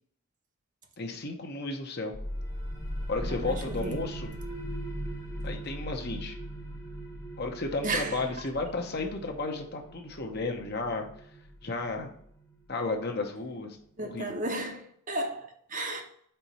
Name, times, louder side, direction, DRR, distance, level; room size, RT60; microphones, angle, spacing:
voice 1, 1.0-2.1 3.1-4.3 5.4-6.3 7.4-11.1 11.6-12.1 12.7-14.4, left 3 dB, 45° left, 0.9 m, -33 dB
sound 1, 2.1-13.5, equal, 15° left, 0.8 m, -39 dB
voice 2, 3.2-4.0 7.8-8.2 14.0-16.1, right 2 dB, 35° right, 0.9 m, -34 dB
4.4 x 4.2 x 5.5 m
head